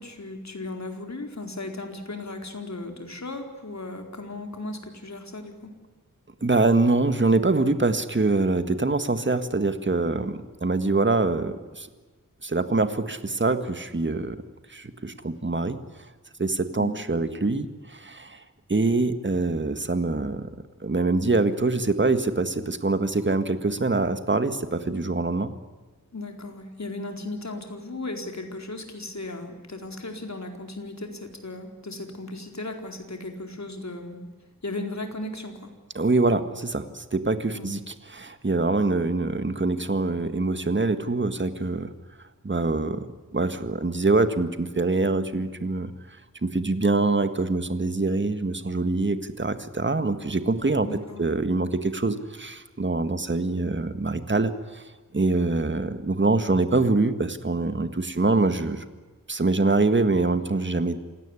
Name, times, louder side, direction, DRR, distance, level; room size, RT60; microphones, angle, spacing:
voice 1, 0.0-5.7 16.8-16.9 26.1-34.2 34.6-35.7 37.5-37.7 50.8-51.3, left 2 dB, 55° left, 4 dB, 4.3 m, -36 dB
voice 2, 6.4-11.9 12.4-14.4 14.7-15.8 16.4-18.4 18.7-20.5 20.8-25.5 36.0-41.9 42.4-43.1 43.3-46.2 46.4-50.9 51.2-54.8 55.1-58.8 59.3-61.0, right 3 dB, 35° right, 10 dB, 1.8 m, -24 dB
28.0 x 17.5 x 9.9 m, 1.3 s
wide cardioid pair, 90°, 34 cm